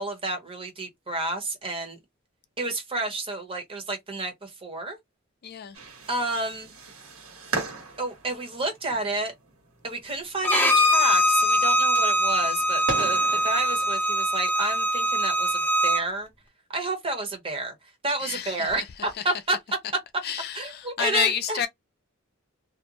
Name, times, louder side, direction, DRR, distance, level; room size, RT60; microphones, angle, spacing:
voice 1, 0.0-2.0 2.6-5.0 6.1-6.7 8.0-9.3 9.8-16.3 16.7-17.7 18.0-19.6 20.5-21.7, right 2 dB, 25° right, 1.0 m, -30 dB
voice 2, 5.4-5.8 18.2-18.7 19.2-19.3 20.2-21.7, left 9 dB, 50° left, 0.4 m, -29 dB
sound 1, 5.7-13.9, right 3 dB, 85° right, 1.2 m, -38 dB
Bowed string instrument, 10.4-16.0, equal, 10° left, 0.7 m, -22 dB
2.5 x 2.1 x 2.9 m
head